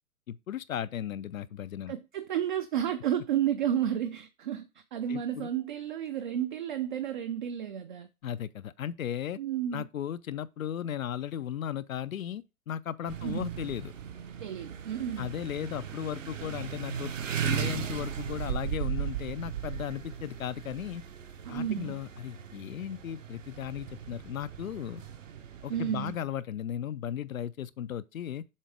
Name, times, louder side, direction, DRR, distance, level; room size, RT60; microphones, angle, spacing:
voice 1, 0.3-1.9 5.1-5.5 8.2-9.4 9.7-13.9 15.2-17.1 17.4-21.0 21.5-25.0 25.6-28.4, left 10 dB, 70° left, 0.5 m, -36 dB
voice 2, 1.9-8.1 9.4-9.9 13.2-13.5 14.4-15.3 21.4-22.0 25.7-26.2, right 10 dB, 35° right, 0.5 m, -32 dB
sound 1, 13.1-26.2, right 9 dB, 60° right, 1.0 m, -37 dB
7.3 x 3.5 x 4.7 m
figure-of-eight pair, 120°, 43 cm